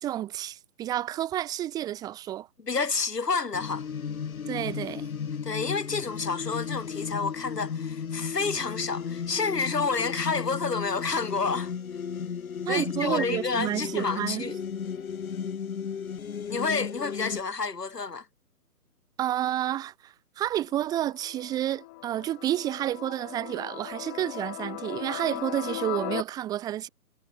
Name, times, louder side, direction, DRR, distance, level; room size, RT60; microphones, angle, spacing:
voice 1, 0.0-2.5 4.5-5.1 12.6-14.5 19.2-26.9, right 12 dB, 10° right, 1.3 m, -30 dB
voice 2, 2.6-3.9 5.4-11.7 12.7-14.6 16.5-18.2, left 4 dB, 85° left, 3.2 m, -29 dB
sound 1, 3.5-17.4, left 7 dB, 60° left, 1.9 m, -34 dB
sound 2, 20.7-26.2, left 24 dB, 10° left, 0.8 m, -38 dB
figure-of-eight pair, 150°, 47 cm